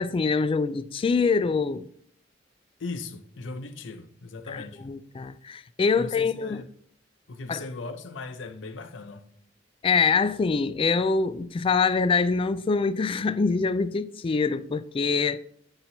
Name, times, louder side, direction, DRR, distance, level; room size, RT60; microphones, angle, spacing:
voice 1, 0.0-1.9 4.5-6.6 7.5-7.6 9.8-15.4, left 4 dB, 30° left, 0.3 m, -24 dB
voice 2, 2.8-4.9 6.0-6.7 7.3-9.2, left 3 dB, 85° left, 0.6 m, -38 dB
8.8 x 5.8 x 2.7 m
head